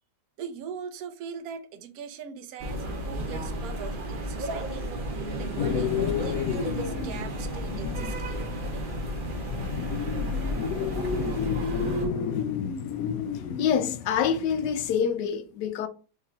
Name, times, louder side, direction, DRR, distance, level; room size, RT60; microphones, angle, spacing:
voice 1, 0.4-4.9 5.4-8.9, right 7 dB, 65° right, 1.1 m, -41 dB
sound 1, 2.6-12.1, equal, 40° right, 0.8 m, -33 dB
sound 2, 5.6-14.9, left 7 dB, 70° left, 0.9 m, -31 dB
voice 2, 13.6-15.9, left 7 dB, 85° left, 1.2 m, -26 dB
4.8 x 2.8 x 3.5 m
omnidirectional pair, 1.8 m